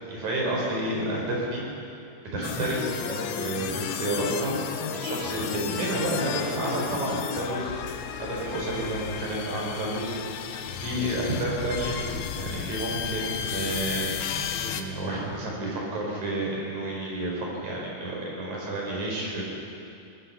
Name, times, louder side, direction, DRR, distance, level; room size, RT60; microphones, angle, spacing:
voice 1, 0.0-1.6 2.3-7.7 8.2-10.5 10.8-14.1 14.6-19.4, right 1 dB, 45° right, -3 dB, 6.4 m, -30 dB
sound 1, 2.4-14.8, left 8 dB, 75° left, 2.7 m, -33 dB
23.5 x 19.0 x 5.8 m, 2.6 s
omnidirectional pair, 4.7 m